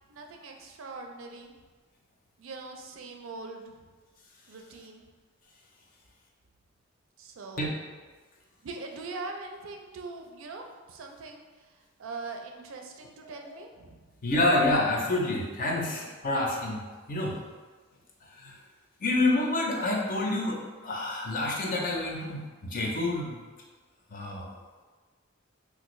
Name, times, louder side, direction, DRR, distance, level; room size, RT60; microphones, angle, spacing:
voice 1, 0.1-1.5 2.4-3.7 4.5-5.0 7.2-7.7 8.6-11.4 12.0-14.1, right 3 dB, 75° right, 3 dB, 0.4 m, -42 dB
voice 2, 14.2-16.8 17.1-17.4 18.4-18.5 19.0-23.4 24.1-24.5, left 2 dB, 45° left, -1 dB, 0.6 m, -28 dB
3.4 x 2.5 x 3.0 m, 1.4 s
head